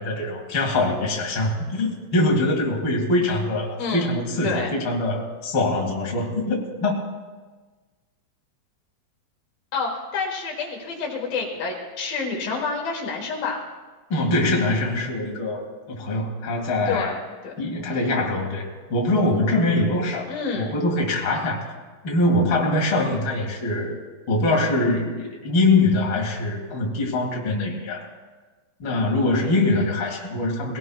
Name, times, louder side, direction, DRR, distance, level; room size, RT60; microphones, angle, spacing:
voice 1, 0.0-7.0 14.1-17.1 17.6-20.3 20.6-21.6 22.0-24.0 24.3-28.1 28.8-30.8, left 2 dB, 40° left, -1 dB, 2.6 m, -23 dB
voice 2, 3.8-4.8 9.7-13.6 16.9-17.2 17.4-17.5 17.9-18.0 20.3-20.8, left 4 dB, 80° left, -2 dB, 3.3 m, -28 dB
23.0 x 18.0 x 2.4 m, 1.3 s
omnidirectional pair, 4.0 m